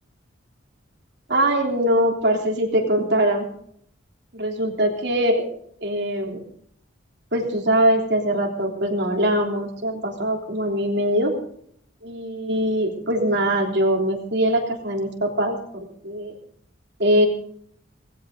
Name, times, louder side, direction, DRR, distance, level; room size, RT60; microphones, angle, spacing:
voice 1, 1.3-3.5 4.3-5.5 5.8-6.4 7.3-11.4 12.0-16.3 17.0-17.3, right 1 dB, 55° right, 1 dB, 3.3 m, -22 dB
18.5 x 16.0 x 3.9 m, 0.65 s
head